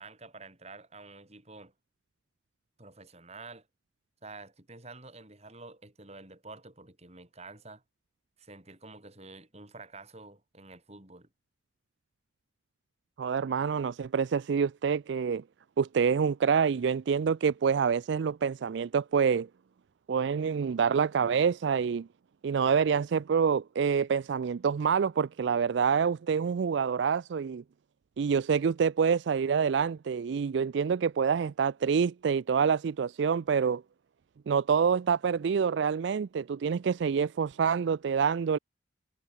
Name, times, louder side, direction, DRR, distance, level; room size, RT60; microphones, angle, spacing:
voice 1, 0.0-1.7 2.8-3.7 4.2-7.8 8.4-11.3, right 3 dB, 35° right, 5.3 m, -49 dB
voice 2, 13.2-15.4 15.8-19.5 20.1-22.1 22.4-27.6 28.2-33.8 34.5-38.6, right 6 dB, 70° right, 0.4 m, -27 dB
head